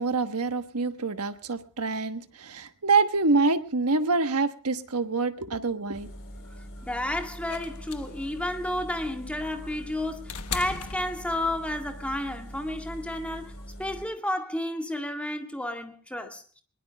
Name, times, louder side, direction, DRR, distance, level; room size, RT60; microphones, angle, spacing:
voice 1, 0.0-6.1, right 3 dB, 85° right, 1.3 m, -26 dB
sound 1, 5.9-14.1, equal, 60° left, 4.1 m, -43 dB
voice 2, 6.6-13.5 13.8-16.6, left 1 dB, 5° left, 1.9 m, -32 dB
sound 2, 7.5-11.8 13.0-13.1, left 6 dB, 80° left, 1.1 m, -39 dB
21.5 x 21.5 x 2.3 m
head